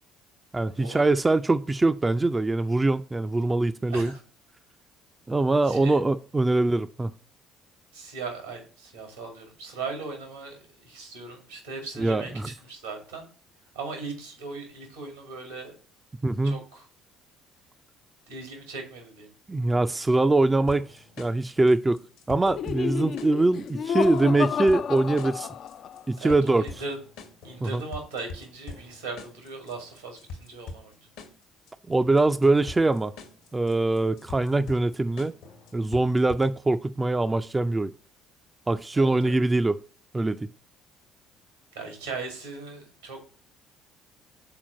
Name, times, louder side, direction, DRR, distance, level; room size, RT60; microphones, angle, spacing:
voice 1, 0.5-4.1 5.3-7.1 12.0-12.5 16.2-16.6 19.5-22.0 22.3-25.5 26.1-26.7 27.6-27.8 31.9-33.1 33.5-35.3 35.7-37.9 38.7-39.8 40.1-40.5, right 2 dB, 20° right, 11 dB, 0.4 m, -23 dB
voice 2, 3.9-4.2 5.6-6.0 7.9-12.3 12.6-13.3 13.7-15.7 16.4-16.9 18.3-19.3 26.2-27.0 27.4-30.9 38.9-39.4 41.7-43.2, right 4 dB, 85° right, 2 dB, 2.1 m, -38 dB
sound 1, 20.7-36.7, left 4 dB, 70° left, 1.1 m, -45 dB
Laughter, 22.4-26.1, left 7 dB, 50° left, 0.3 m, -30 dB
5.9 x 4.3 x 5.2 m, 0.41 s
hypercardioid pair, 55°, 0 cm